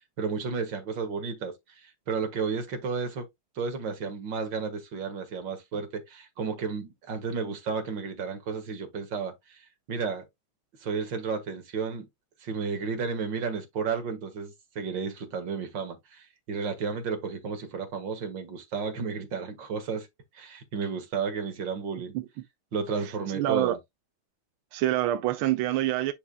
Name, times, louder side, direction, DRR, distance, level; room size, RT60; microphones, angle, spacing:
voice 1, 0.2-3.3 3.6-9.6 9.9-10.3 10.8-12.1 12.4-20.1 20.3-22.1 22.7-23.8, right 5 dB, 65° right, 2.3 m, -32 dB
voice 2, 23.0-23.8 24.7-26.1, right 14 dB, 85° right, 1.5 m, -26 dB
9.8 x 5.0 x 2.2 m
omnidirectional pair, 2.3 m